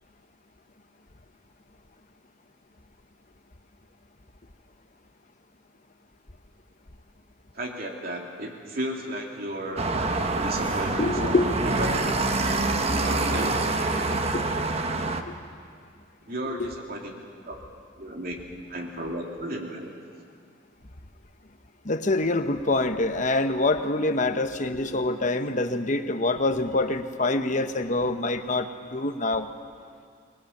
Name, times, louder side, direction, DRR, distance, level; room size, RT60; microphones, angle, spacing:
voice 1, 7.5-9.9 10.4-11.9 13.0-13.6 16.3-17.1 17.4-17.6 18.0-18.4 18.7-19.9, right 1 dB, 50° right, 0 dB, 2.9 m, -34 dB
sound 1, 9.8-15.2, right 2 dB, 30° right, 1.1 m, -26 dB
voice 2, 11.0-11.5 13.4-13.5 14.1-14.4 15.2-15.3 16.5-16.7 21.8-29.5, left 2 dB, 40° left, 8 dB, 1.1 m, -26 dB
24.5 x 21.0 x 7.3 m, 2.2 s
head